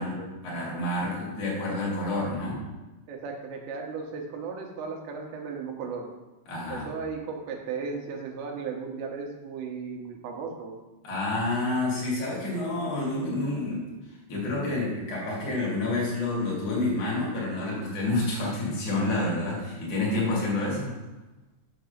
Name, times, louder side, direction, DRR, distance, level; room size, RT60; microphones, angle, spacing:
voice 1, 0.0-2.6 6.5-6.9 11.0-20.9, left 2 dB, 40° left, -5 dB, 3.0 m, -29 dB
voice 2, 3.1-6.1 6.7-10.7, right 5 dB, 75° right, 1 dB, 2.9 m, -36 dB
6.9 x 4.6 x 6.6 m, 1.1 s
omnidirectional pair, 5.6 m